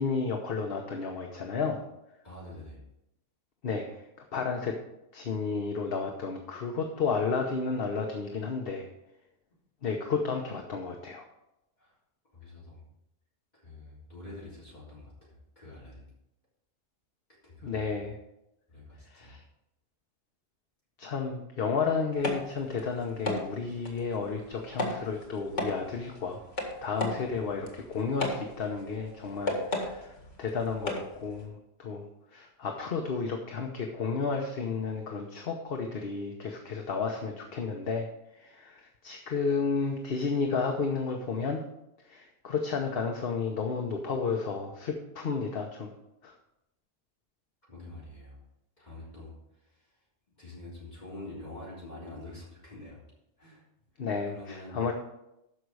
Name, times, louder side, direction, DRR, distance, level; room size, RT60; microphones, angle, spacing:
voice 1, 0.0-1.8 3.6-3.8 4.3-4.8 5.1-8.9 9.8-11.2 17.6-18.2 19.1-19.4 21.0-26.4 26.8-30.1 30.4-32.0 32.3-38.1 38.4-41.6 42.1-45.9 46.2-46.3 54.0-54.9, left 5 dB, 55° left, 2 dB, 1.1 m, -32 dB
voice 2, 2.2-2.8 11.8-11.9 12.3-12.8 13.5-16.1 17.4-18.0 18.7-19.4 47.7-48.4 48.8-49.3 49.6-49.9 50.4-53.0 53.4-53.6 53.9-54.9, left 2 dB, 35° left, -8 dB, 3.8 m, -46 dB
sound 1, 22.1-31.5, left 1 dB, 85° left, 2.1 m, -37 dB
13.0 x 5.3 x 4.7 m, 0.87 s
omnidirectional pair, 1.2 m